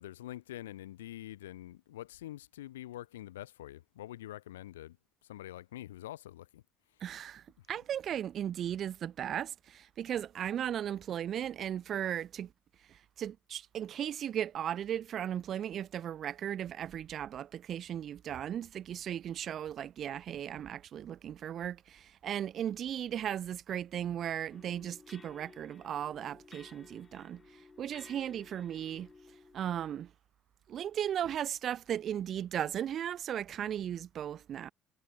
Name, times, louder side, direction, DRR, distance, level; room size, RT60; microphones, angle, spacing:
voice 1, 0.0-5.0 5.3-6.6, left 14 dB, 70° left, 0.7 m, -45 dB
voice 2, 7.0-12.5 13.2-27.4 27.8-29.1 29.5-30.1 30.7-34.7, right 10 dB, 45° right, 0.5 m, -36 dB
sound 1, 24.5-29.9, left 4 dB, 25° left, 1.2 m, -56 dB
figure-of-eight pair, 50°, 0 cm